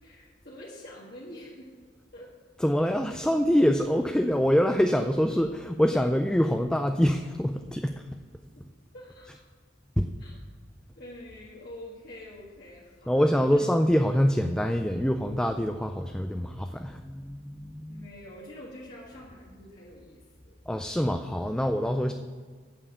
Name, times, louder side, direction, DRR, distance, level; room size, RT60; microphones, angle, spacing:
voice 1, 0.0-2.4 8.9-9.4 10.2-10.4 10.9-13.7 17.9-20.6, left 1 dB, 55° left, -6 dB, 1.6 m, -46 dB
voice 2, 2.6-7.9 10.0-10.1 13.1-18.1 20.7-22.1, equal, 5° left, 5 dB, 0.4 m, -25 dB
8.6 x 7.1 x 7.0 m, 1.5 s
head